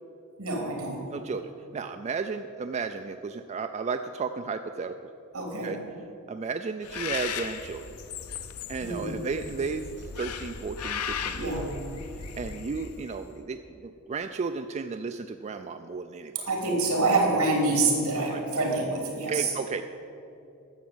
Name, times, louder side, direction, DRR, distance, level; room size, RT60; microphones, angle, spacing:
voice 1, 0.4-1.0 5.3-5.7 8.8-9.2 11.4-11.7 16.5-19.5, right 2 dB, 75° right, 0 dB, 3.1 m, -26 dB
voice 2, 1.1-5.0 5.6-5.8 6.3-7.8 8.7-11.8 12.4-16.5 18.3-18.4 19.3-19.8, right 4 dB, 30° right, 8 dB, 0.3 m, -34 dB
Bird, 6.8-13.2, left 6 dB, 80° left, 0.7 m, -37 dB
11.5 x 7.1 x 7.9 m, 2.8 s
head